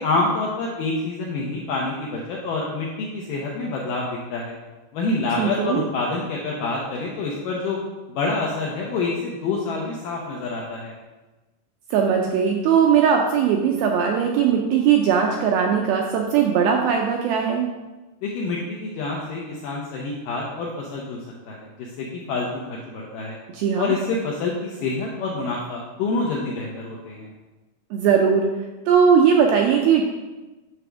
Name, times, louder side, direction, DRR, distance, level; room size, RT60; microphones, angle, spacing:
voice 1, 0.0-4.6 4.9-7.8 8.1-10.9 18.2-21.2 21.5-23.4 23.8-27.3, left 3 dB, 80° left, -2 dB, 1.9 m, -27 dB
voice 2, 5.4-5.8 11.9-17.7 23.5-24.0 27.9-28.4 28.9-30.0, right 7 dB, 85° right, 1 dB, 2.2 m, -19 dB
9.4 x 3.4 x 6.1 m, 1.1 s
omnidirectional pair, 5.0 m